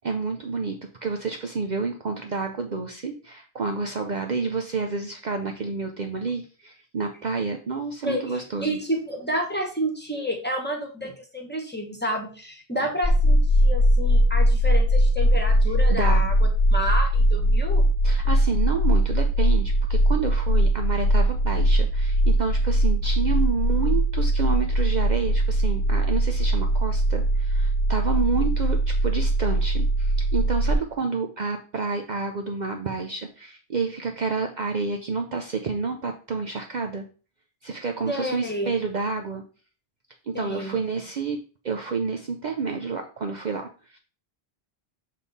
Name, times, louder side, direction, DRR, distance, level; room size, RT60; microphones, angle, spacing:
voice 1, 0.0-8.8 15.7-16.3 18.0-37.0 37.6-39.4 40.2-44.0, right 4 dB, 50° right, 4 dB, 0.7 m, -29 dB
voice 2, 8.0-16.3 16.7-17.8 38.1-38.7 40.3-40.8, equal, 10° left, 0 dB, 1.2 m, -30 dB
sound 1, 13.0-30.7, right 1 dB, 30° right, 1.3 m, -21 dB
6.5 x 3.6 x 4.0 m, 0.36 s
omnidirectional pair, 1.1 m